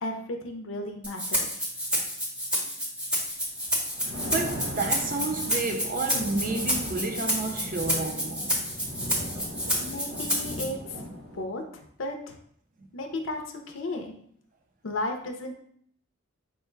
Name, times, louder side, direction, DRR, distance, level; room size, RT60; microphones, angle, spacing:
voice 1, 0.0-1.6 9.8-11.0 11.3-12.4 12.9-14.1 14.8-15.5, left 1 dB, 70° left, 0.6 m, -34 dB
Rattle (instrument), 1.0-10.6, equal, 5° right, 0.8 m, -29 dB
Thunder, 3.7-11.4, equal, 85° right, 1.3 m, -39 dB
voice 2, 4.2-8.6 12.8-12.9, right 3 dB, 40° right, 0.5 m, -31 dB
4.4 x 2.2 x 4.5 m
head